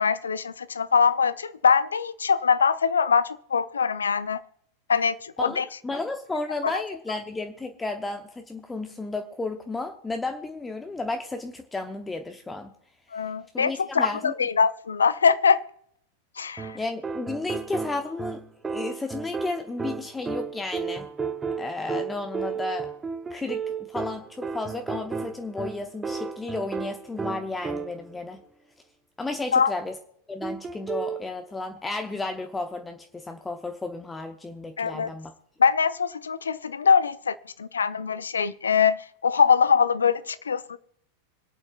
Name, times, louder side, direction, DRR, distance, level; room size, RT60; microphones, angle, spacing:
voice 1, 0.0-4.4 4.9-5.6 6.6-6.8 13.1-15.6 16.4-16.8 29.5-29.7 34.8-35.1 35.6-39.0 39.2-40.8, left 6 dB, 70° left, 0.6 m, -23 dB
voice 2, 5.4-12.7 13.5-14.3 16.7-18.4 18.7-21.1 21.6-22.9 23.3-28.4 29.2-30.0 30.3-35.3, left 3 dB, 10° left, 0.9 m, -33 dB
sound 1, 16.6-28.2 30.4-31.2, right 5 dB, 15° right, 0.9 m, -33 dB
26.0 x 8.8 x 2.4 m
figure-of-eight pair, 90°, 0 cm